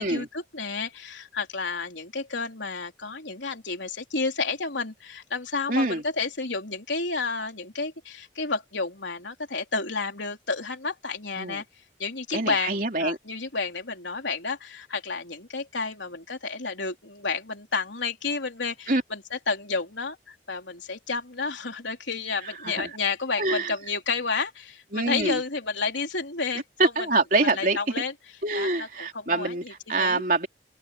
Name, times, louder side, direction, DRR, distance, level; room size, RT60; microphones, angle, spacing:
voice 1, 0.0-11.6 12.0-26.9 27.5-28.1 28.6-30.2, left 4 dB, 85° left, 3.8 m, -31 dB
voice 2, 5.7-6.0 11.4-11.6 12.3-13.2 18.9-19.0 22.4-23.0 23.4-23.7 24.9-25.4 26.8-27.8 28.4-30.5, right 2 dB, 50° right, 3.5 m, -25 dB
head